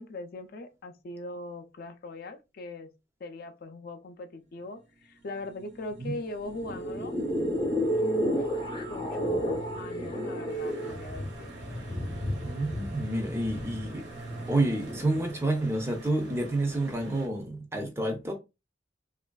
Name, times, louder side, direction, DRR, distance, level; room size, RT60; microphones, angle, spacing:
voice 1, 0.0-2.9 3.2-7.1 8.0-8.5 8.9-11.5, left 2 dB, 50° left, 0.4 m, -40 dB
sound 1, 4.7-15.3, right 2 dB, 60° right, 0.6 m, -46 dB
sound 2, 6.5-15.2, equal, 25° left, 0.7 m, -32 dB
sound 3, 10.5-17.3, right 2 dB, 80° right, 1.2 m, -47 dB
voice 2, 12.4-14.1 14.5-18.3, right 2 dB, 15° right, 0.5 m, -29 dB
3.0 x 2.5 x 2.2 m
head